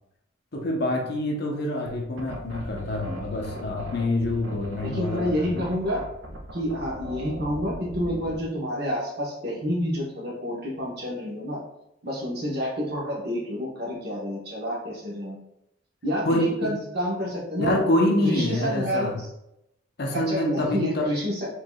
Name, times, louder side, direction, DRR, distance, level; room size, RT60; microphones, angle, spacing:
voice 1, 0.5-5.7 16.2-16.7 17.6-19.2 20.0-21.1, left 1 dB, 55° left, 0 dB, 0.8 m, -26 dB
sound 1, 1.9-8.5, right 1 dB, 75° right, 0.7 m, -39 dB
voice 2, 4.8-6.0 6.5-11.6 12.0-15.4 16.0-17.8 18.2-19.3 20.1-21.5, equal, 55° right, -4 dB, 1.1 m, -29 dB
4.7 x 3.7 x 2.3 m, 0.84 s
head